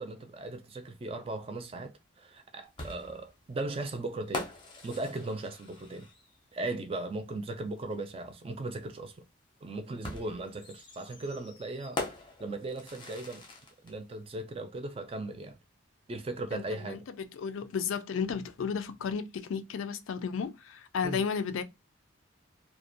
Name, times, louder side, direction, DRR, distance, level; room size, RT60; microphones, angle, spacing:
voice 1, 0.0-4.5 4.8-6.1 6.5-9.1 9.6-12.0 12.4-13.4 13.8-15.6 16.1-17.1 21.0-21.2, right 2 dB, 30° right, 0.3 m, -37 dB
sound 1, 2.8-6.4 7.9-8.0 10.0-13.9, left 2 dB, 25° left, 0.5 m, -42 dB
voice 2, 16.5-21.6, left 6 dB, 85° left, 0.4 m, -33 dB
2.5 x 2.1 x 2.5 m
head